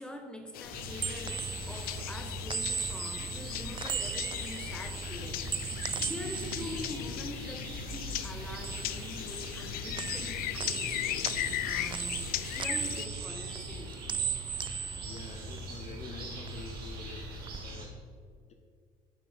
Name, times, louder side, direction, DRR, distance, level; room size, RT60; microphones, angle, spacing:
voice 1, 0.0-5.5 5.8-11.3 11.6-14.1, left 1 dB, 5° left, 5 dB, 1.2 m, -44 dB
sound 1, 0.5-13.1, left 14 dB, 55° left, 0.4 m, -38 dB
sound 2, 0.7-8.0 8.3-9.7 10.0-16.0 16.3-17.6, right 7 dB, 30° right, 0.4 m, -38 dB
sound 3, 0.7-17.9, right 1 dB, 60° right, 2.6 m, -42 dB
voice 2, 14.9-18.0, left 4 dB, 40° left, 5 dB, 0.9 m, -47 dB
9.6 x 6.8 x 4.3 m, 2.1 s
hypercardioid pair, 65°, 18 cm